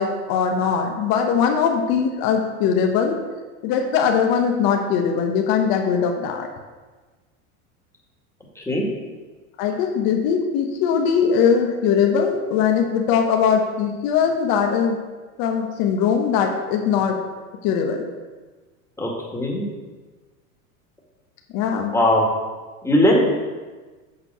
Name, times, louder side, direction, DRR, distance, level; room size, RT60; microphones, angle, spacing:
voice 1, 0.0-3.2 3.6-6.5 9.6-15.0 15.4-17.2 17.6-18.1 21.5-21.9, left 7 dB, 50° left, 3 dB, 1.2 m, -20 dB
voice 2, 8.6-8.9 19.0-19.7 21.9-22.3 22.8-23.4, left 1 dB, 5° left, -2 dB, 1.9 m, -19 dB
6.8 x 5.2 x 6.0 m, 1.3 s
hypercardioid pair, 105°, 44 cm